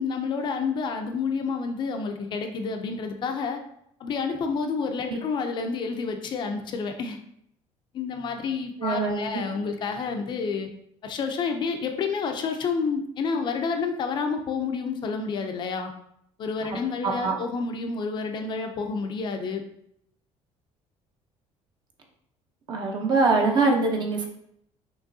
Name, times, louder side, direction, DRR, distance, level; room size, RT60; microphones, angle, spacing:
voice 1, 0.0-3.6 4.0-7.2 7.9-10.7 11.0-15.9 16.4-19.6, left 5 dB, 40° left, 4 dB, 0.4 m, -29 dB
voice 2, 8.8-9.4 16.7-17.3 22.7-24.3, right 3 dB, 35° right, 2 dB, 0.7 m, -24 dB
6.0 x 3.0 x 2.6 m, 0.73 s
cardioid pair, 175°, 12 cm